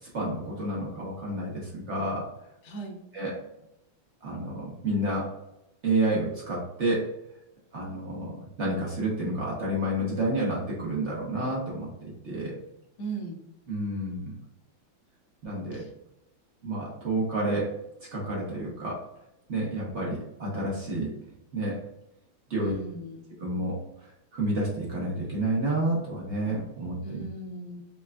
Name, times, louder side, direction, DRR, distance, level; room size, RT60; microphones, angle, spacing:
voice 1, 0.0-2.3 3.1-3.3 4.2-5.3 5.8-7.1 7.7-12.5 13.7-14.3 15.4-15.8 16.6-17.7 18.0-19.1 19.5-21.1 21.5-21.8 22.5-22.7 23.4-27.2, right 1 dB, 60° right, -4 dB, 0.7 m, -30 dB
voice 2, 2.6-3.0 13.0-13.4 15.7-15.9 22.6-23.2 27.0-27.8, right 3 dB, 65° left, 0 dB, 1.4 m, -38 dB
5.8 x 2.3 x 2.2 m, 0.85 s
omnidirectional pair, 2.3 m